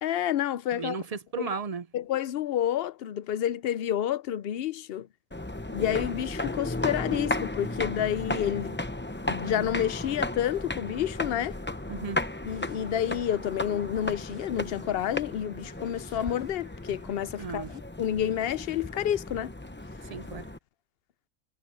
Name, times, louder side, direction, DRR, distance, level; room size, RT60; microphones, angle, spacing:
voice 1, 0.0-1.0 1.4-1.5 1.9-5.1 5.7-8.8 9.3-11.6 12.4-19.5, left 10 dB, 60° left, 0.7 m, -29 dB
voice 2, 0.7-1.9 11.9-12.2 17.4-17.7 20.1-20.5, right 5 dB, 50° right, 0.4 m, -35 dB
sound 1, 5.3-20.6, left 2 dB, 10° left, 0.7 m, -35 dB
sound 2, 11.4-17.8, right 1 dB, 20° right, 3.3 m, -57 dB
omnidirectional pair, 1.4 m